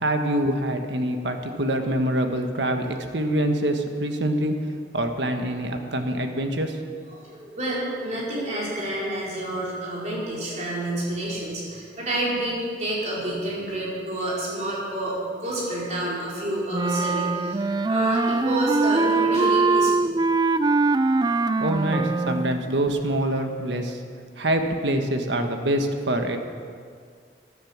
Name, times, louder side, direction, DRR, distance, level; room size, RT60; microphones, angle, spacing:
voice 1, 0.0-4.5 4.9-6.8 21.6-24.0 24.4-26.4, right 1 dB, 75° right, 5 dB, 1.4 m, -25 dB
voice 2, 7.1-20.1, right 1 dB, 40° right, -6 dB, 4.8 m, -29 dB
Wind instrument woodwind instrument, 16.7-22.6, right 3 dB, 20° right, 0.3 m, -22 dB
13.5 x 11.5 x 7.4 m, 2.1 s
head